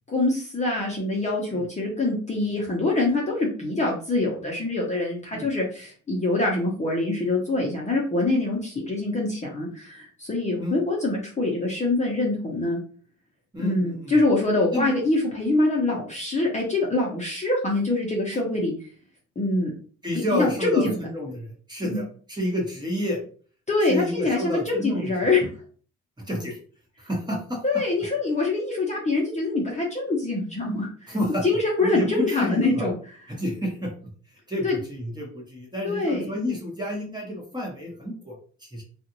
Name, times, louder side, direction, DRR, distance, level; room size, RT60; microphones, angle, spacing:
voice 1, 0.1-12.8 13.6-18.7 19.4-19.7 20.3-20.9 21.8-22.0 23.7-25.5 27.6-30.9 31.4-32.9 34.6-34.8 35.8-36.3, left 2 dB, 25° left, -3 dB, 0.8 m, -24 dB
voice 2, 13.5-14.2 14.7-14.9 20.0-23.2 23.9-25.1 26.3-26.6 27.0-27.6 31.1-31.4 31.8-32.9 33.3-33.9 34.5-38.3 38.6-38.8, left 1 dB, 15° right, -2 dB, 1.1 m, -29 dB
2.5 x 2.5 x 2.9 m, 0.42 s
cardioid pair, 90°, 30 cm